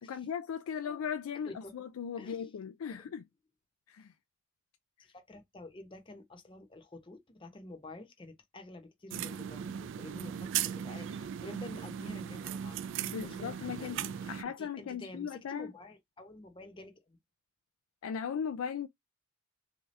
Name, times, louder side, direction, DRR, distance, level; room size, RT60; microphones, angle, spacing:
voice 1, 0.0-3.2 3.9-4.1 13.0-15.7 18.0-18.9, left 7 dB, 85° left, 0.3 m, -38 dB
voice 2, 1.5-1.8 2.2-2.5 5.0-17.2, left 2 dB, 25° left, 0.7 m, -50 dB
sound 1, 9.1-14.4, right 9 dB, 60° right, 0.3 m, -37 dB
3.5 x 2.8 x 3.1 m
head